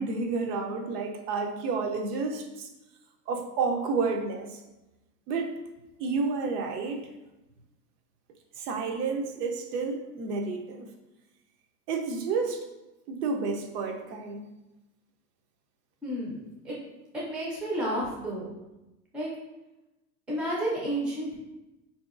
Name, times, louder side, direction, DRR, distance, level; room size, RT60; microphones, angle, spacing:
voice 1, 0.0-2.7 3.3-4.6 5.3-5.5 6.0-7.1 8.6-10.9 11.9-12.6 13.1-14.4, right 4 dB, 85° right, 4 dB, 0.6 m, -30 dB
voice 2, 16.0-16.4 16.6-16.7 17.1-18.5 19.1-19.3 20.3-21.4, right 1 dB, 5° right, -5 dB, 0.3 m, -31 dB
3.7 x 2.8 x 2.4 m, 1.0 s
supercardioid pair, 125°, 46 cm